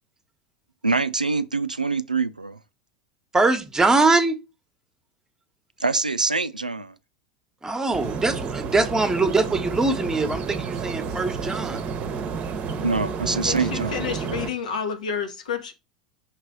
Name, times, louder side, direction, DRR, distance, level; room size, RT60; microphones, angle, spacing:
voice 1, 0.8-2.6 5.8-6.9 12.8-14.0, right 3 dB, 90° right, 0.4 m, -24 dB
voice 2, 3.3-4.4 7.6-11.8, right 3 dB, 15° right, 1.0 m, -22 dB
sound 1, 7.9-14.5, right 5 dB, 35° right, 0.8 m, -30 dB
voice 3, 13.3-15.7, left 6 dB, 70° left, 1.1 m, -30 dB
5.8 x 3.2 x 5.2 m
figure-of-eight pair, 80°, 4 cm